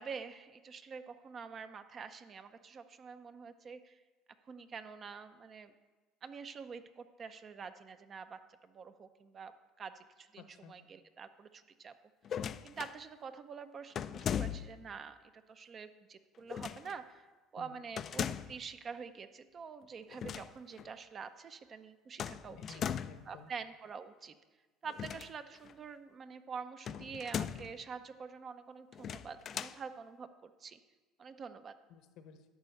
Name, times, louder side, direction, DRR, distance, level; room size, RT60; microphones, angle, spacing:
voice 1, 0.0-4.0 4.5-5.7 6.2-9.5 9.8-11.9 12.6-17.3 17.5-22.8 23.3-24.4 24.8-30.8 31.2-31.7, right 5 dB, 35° right, 10 dB, 0.6 m, -47 dB
voice 2, 10.4-10.7 17.6-17.7 22.6-23.5 31.9-32.4, left 7 dB, 65° left, 8 dB, 0.9 m, -54 dB
sound 1, 12.2-13.0 13.9-14.9 16.5-17.0 18.0-18.6 20.1-20.5 20.8-20.9 22.2-23.3 24.9-25.7 26.8-27.8 28.9-29.8, left 8 dB, 40° left, 0.3 m, -39 dB
11.0 x 4.2 x 7.8 m, 1.3 s
supercardioid pair, 110°, 0 cm